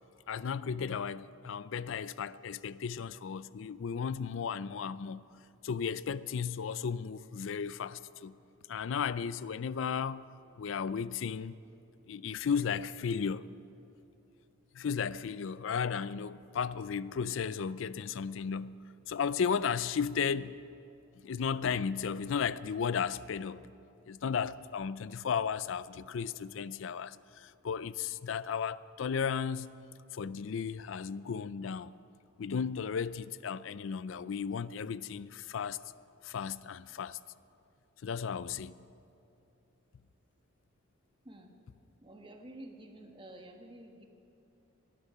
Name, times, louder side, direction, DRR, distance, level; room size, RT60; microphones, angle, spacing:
voice 1, 0.3-5.2 5.6-8.3 8.7-10.2 10.6-11.5 12.1-13.5 14.7-18.7 19.1-20.6 21.2-23.6 24.1-29.7 30.1-31.9 32.4-35.8 36.2-37.2 38.0-38.8, left 6 dB, 65° left, 0.4 m, -34 dB
voice 2, 42.0-44.0, right 1 dB, 25° right, 1.3 m, -50 dB
18.5 x 11.5 x 5.7 m
head